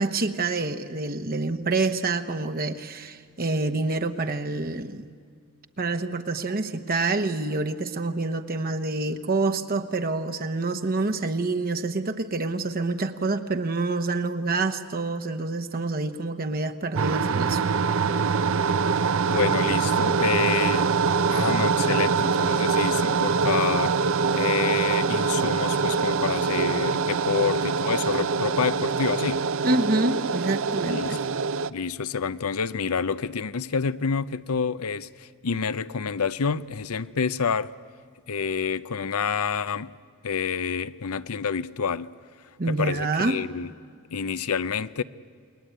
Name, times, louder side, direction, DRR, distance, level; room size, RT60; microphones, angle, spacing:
voice 1, 0.0-5.1 5.8-17.7 29.6-31.2 42.6-43.4, right 3 dB, 45° right, 1.0 m, -27 dB
sound 1, 17.0-31.7, right 5 dB, 65° right, 0.6 m, -24 dB
voice 2, 19.3-20.9 21.3-24.0 24.3-29.4 30.8-31.2 31.7-37.7 38.3-39.9 40.2-42.1 42.7-43.7 44.1-45.0, left 6 dB, 80° left, 0.7 m, -28 dB
29.0 x 21.0 x 9.3 m
head